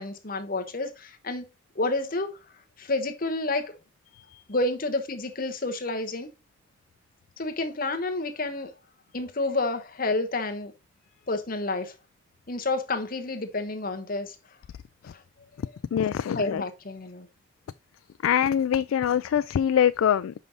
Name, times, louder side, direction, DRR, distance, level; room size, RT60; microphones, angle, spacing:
voice 1, 0.0-1.4 1.7-2.4 2.8-3.7 4.5-6.3 7.4-8.7 9.1-10.7 11.3-11.9 12.5-14.4 16.3-17.3, left 2 dB, 45° left, 1.0 m, -29 dB
voice 2, 15.6-16.6 18.2-20.3, left 9 dB, 85° left, 0.3 m, -24 dB
5.5 x 5.4 x 3.9 m
head